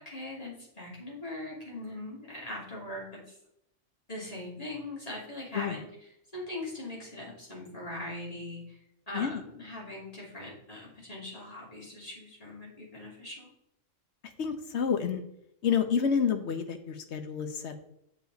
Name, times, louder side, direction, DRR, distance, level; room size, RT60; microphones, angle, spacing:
voice 1, 0.0-3.3 4.1-5.9 6.3-8.8 9.1-13.5, left 1 dB, 30° left, -5 dB, 3.1 m, -41 dB
voice 2, 14.4-15.2 15.6-17.8, left 7 dB, 60° left, 7 dB, 1.1 m, -29 dB
7.4 x 6.8 x 4.0 m, 0.77 s
omnidirectional pair, 1.4 m